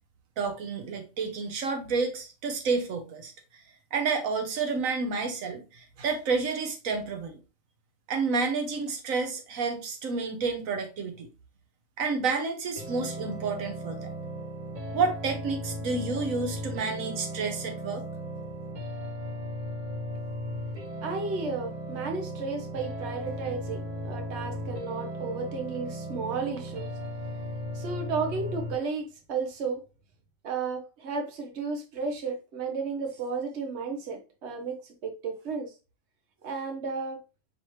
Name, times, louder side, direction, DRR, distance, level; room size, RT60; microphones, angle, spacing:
voice 1, 0.4-3.6 3.9-7.4 8.1-11.3 12.0-14.1 14.9-18.0, right 4 dB, 85° right, 1.3 m, -30 dB
sound 1, 12.8-28.7, equal, 40° right, 0.9 m, -36 dB
voice 2, 21.0-26.9 27.7-29.8 30.4-35.7 36.4-37.2, right 4 dB, 60° right, 1.2 m, -33 dB
5.6 x 3.1 x 3.0 m
omnidirectional pair, 1.4 m